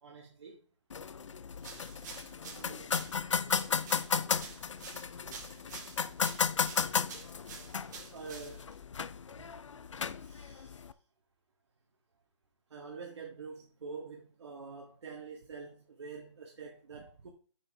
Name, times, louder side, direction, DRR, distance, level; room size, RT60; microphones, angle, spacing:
voice 1, 0.0-0.6 2.5-2.9 5.3-5.4 8.1-8.7 10.2-10.8 12.7-17.3, right 5 dB, 60° right, 1.7 m, -46 dB
sound 1, 0.9-10.9, left 6 dB, 75° left, 0.6 m, -35 dB
sound 2, 1.6-8.8, right 5 dB, 35° right, 2.0 m, -49 dB
8.1 x 6.3 x 3.4 m
hypercardioid pair, 160°, 16 cm